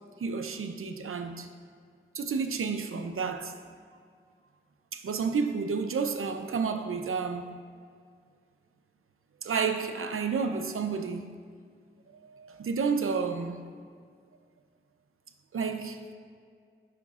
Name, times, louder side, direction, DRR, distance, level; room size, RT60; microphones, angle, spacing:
voice 1, 0.2-1.5 2.1-3.5 4.9-7.6 9.4-11.3 12.2-13.7 15.5-16.0, right 5 dB, 80° right, 0.6 m, -31 dB
13.0 x 5.8 x 2.4 m
wide cardioid pair, 65°, 21 cm